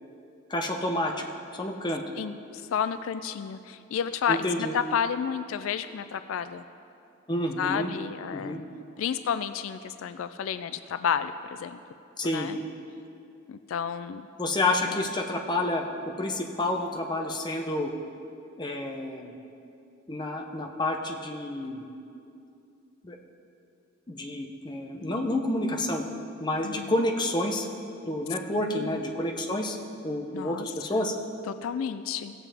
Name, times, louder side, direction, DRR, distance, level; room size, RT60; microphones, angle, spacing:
voice 1, 0.5-1.1 1.5-2.0 4.3-4.7 7.3-7.9 8.3-8.6 12.2-12.5 14.4-17.9 18.6-19.3 20.1-21.9 23.0-23.2 24.1-26.0 26.4-27.7 28.0-31.1, left 1 dB, 20° left, 2 dB, 0.7 m, -29 dB
voice 2, 2.2-6.6 7.6-8.6 9.0-11.3 11.6-11.8 12.2-12.6 13.5-14.3 14.9-15.0 25.0-25.2 26.6-26.9 28.5-29.0 30.3-30.7 30.9-31.1 31.5-32.3, left 7 dB, 75° left, 11 dB, 0.3 m, -31 dB
16.5 x 7.4 x 3.5 m, 2.6 s
head